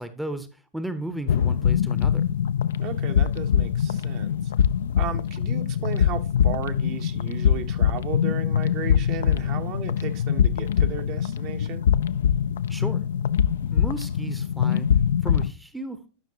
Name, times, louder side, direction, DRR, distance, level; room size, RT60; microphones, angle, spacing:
voice 1, 0.0-2.2 12.7-13.0 13.7-14.9 15.2-16.0, right 1 dB, 5° right, 0.7 m, -34 dB
sound 1, 1.3-15.5, left 9 dB, 60° left, 0.3 m, -23 dB
voice 2, 2.8-4.5 4.9-11.8, right 9 dB, 40° right, 0.9 m, -35 dB
11.5 x 5.9 x 2.8 m
figure-of-eight pair, 90°, 0 cm